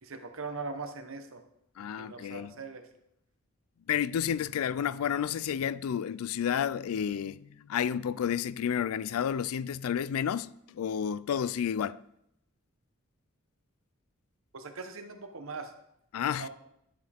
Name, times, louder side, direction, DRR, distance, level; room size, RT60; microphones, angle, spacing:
voice 1, 0.0-1.4 1.8-2.8 14.5-15.7 16.4-16.5, right 4 dB, 70° right, 1.0 m, -40 dB
voice 2, 1.8-2.5 3.9-12.0 16.1-16.5, left 8 dB, 80° left, 0.3 m, -31 dB
11.0 x 7.1 x 3.5 m
head